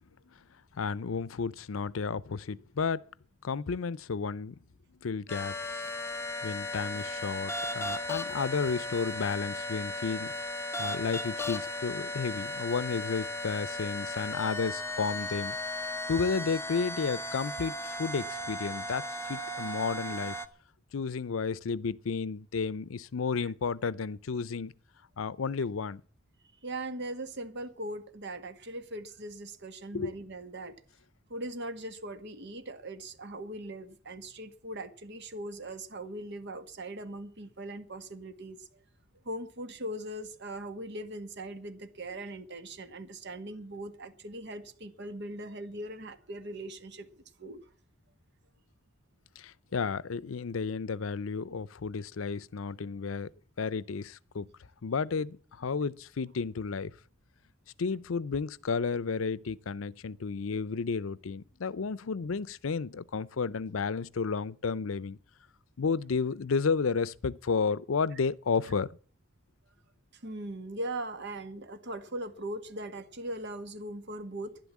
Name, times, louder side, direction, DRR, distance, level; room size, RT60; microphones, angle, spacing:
voice 1, 0.8-3.0 3.4-4.5 5.0-5.8 6.4-10.3 10.8-15.6 16.1-20.4 20.9-24.7 25.2-26.0 29.9-30.1 49.4-53.3 53.6-54.5 54.8-56.9 57.8-65.2 65.8-68.9, left 5 dB, 90° left, 0.6 m, -32 dB
sound 1, 5.3-20.5, left 1 dB, 15° left, 1.0 m, -36 dB
voice 2, 26.6-30.7 31.3-38.8 39.3-47.6 68.1-68.2 70.1-74.6, right 1 dB, 60° right, 1.6 m, -40 dB
12.0 x 11.0 x 7.3 m
head